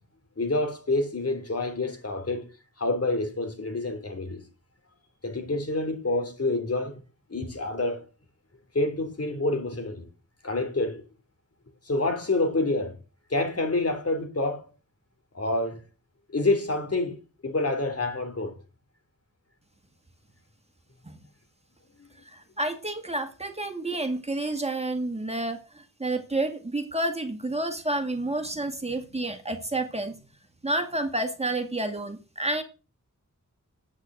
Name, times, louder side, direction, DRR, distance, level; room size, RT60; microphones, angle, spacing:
voice 1, 0.4-2.5 2.8-4.4 5.2-7.0 7.3-8.0 8.7-10.1 10.4-11.0 11.8-13.0 13.3-14.7 15.3-15.8 16.3-18.6 22.0-22.1, left 2 dB, 50° left, 3.2 m, -27 dB
voice 2, 22.3-30.1 30.6-32.6, right 2 dB, 20° right, 2.2 m, -30 dB
10.0 x 8.9 x 7.9 m
wide cardioid pair, 95°, 31 cm